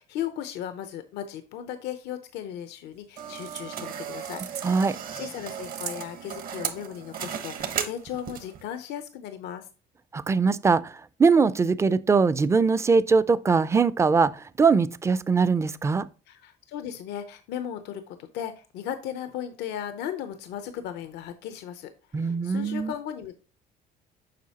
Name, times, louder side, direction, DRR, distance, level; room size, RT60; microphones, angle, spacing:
voice 1, 0.0-4.4 5.2-9.7 16.3-23.4, left 10 dB, 85° left, 0.7 m, -36 dB
sound 1, 2.9-8.0, right 9 dB, 80° right, 1.0 m, -44 dB
sound 2, 3.2-8.6, right 7 dB, 60° right, 1.1 m, -35 dB
voice 2, 4.6-5.0 10.1-16.1 22.1-22.9, right 4 dB, 15° right, 0.4 m, -22 dB
7.6 x 5.5 x 2.9 m
cardioid pair, 110°, 17 cm